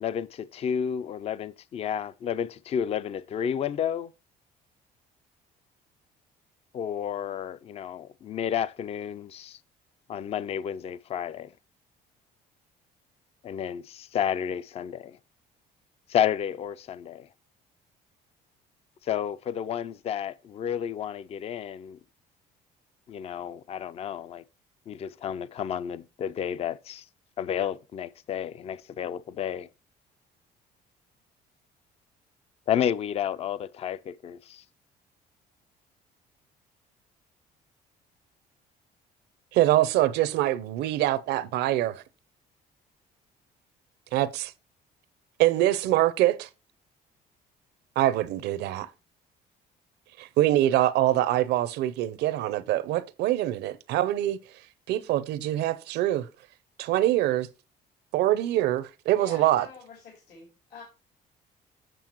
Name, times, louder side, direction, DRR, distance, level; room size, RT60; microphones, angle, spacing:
voice 1, 0.0-4.1 6.7-9.6 10.1-11.5 13.4-15.2 16.1-17.3 19.0-22.0 23.1-24.4 24.9-27.1 27.4-29.7 32.7-34.6, left 9 dB, 40° left, 0.4 m, -31 dB
voice 2, 39.5-42.0 44.1-44.5 45.4-46.5 48.0-48.9 50.2-54.4 54.9-56.2 56.8-57.5 58.1-59.7, right 14 dB, 80° right, 0.6 m, -24 dB
voice 3, 59.1-60.8, left 5 dB, 75° left, 2.8 m, -47 dB
7.6 x 6.9 x 3.0 m
cardioid pair, 110°, 17 cm